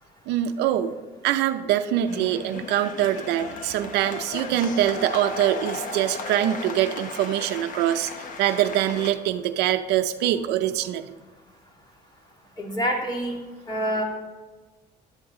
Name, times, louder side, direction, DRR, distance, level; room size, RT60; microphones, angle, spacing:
voice 1, 0.3-1.0 1.2-8.1 8.4-11.1, right 11 dB, 85° right, 8 dB, 0.5 m, -24 dB
sound 1, 2.1-9.1, left 4 dB, 50° left, 1.2 m, -36 dB
voice 2, 12.6-13.4 13.7-14.0, equal, 25° left, 0 dB, 2.2 m, -26 dB
10.5 x 7.9 x 3.8 m, 1.3 s
cardioid pair, 110°, 17 cm